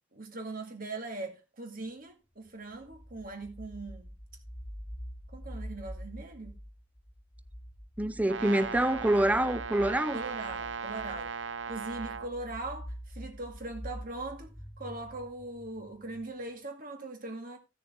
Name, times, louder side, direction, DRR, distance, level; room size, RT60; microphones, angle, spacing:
voice 1, 0.1-4.1 5.3-6.6 10.1-11.3 11.7-17.6, right 2 dB, 50° right, 2.3 m, -40 dB
sound 1, 1.9-2.0 2.5-16.4, equal, 15° left, 2.7 m, -46 dB
voice 2, 8.0-10.2, right 1 dB, 10° right, 0.5 m, -26 dB
Brass instrument, 8.2-12.3, right 5 dB, 80° right, 1.0 m, -37 dB
15.0 x 6.8 x 3.5 m
head